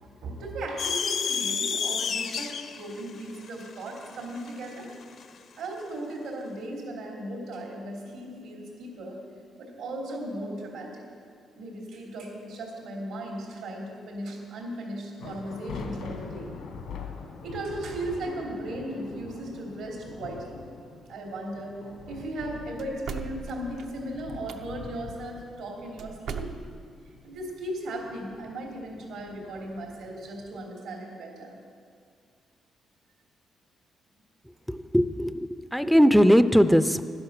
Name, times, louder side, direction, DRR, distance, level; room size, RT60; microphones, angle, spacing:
voice 1, 0.0-4.9 5.6-9.2 9.6-11.0 11.5-16.6 17.4-20.6 21.1-26.4 27.2-31.6, right 1 dB, 85° right, -1 dB, 3.1 m, -37 dB
sound 1, 0.8-5.3, left 6 dB, 55° left, 0.6 m, -30 dB
sound 2, 15.2-30.6, left 5 dB, 80° left, 1.5 m, -44 dB
sound 3, 22.8-24.6 26.0-27.0, right 6 dB, 70° right, 0.6 m, -38 dB
voice 2, 34.7-37.0, equal, ahead, 11 dB, 0.4 m, -20 dB
10.5 x 10.5 x 6.5 m, 2.2 s
cardioid pair, 125°, 0 cm